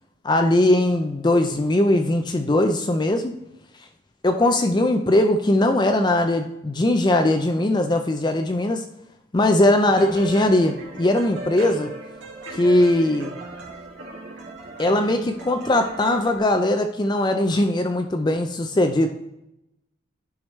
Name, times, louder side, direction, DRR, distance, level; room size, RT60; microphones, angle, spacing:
voice 1, 0.2-3.3 4.2-8.8 9.3-11.9 12.5-13.3 14.8-19.1, left 1 dB, 25° left, 6 dB, 0.4 m, -20 dB
sound 1, 10.0-16.4, right 2 dB, 70° right, 2.0 m, -37 dB
10.5 x 4.8 x 3.1 m, 0.86 s
head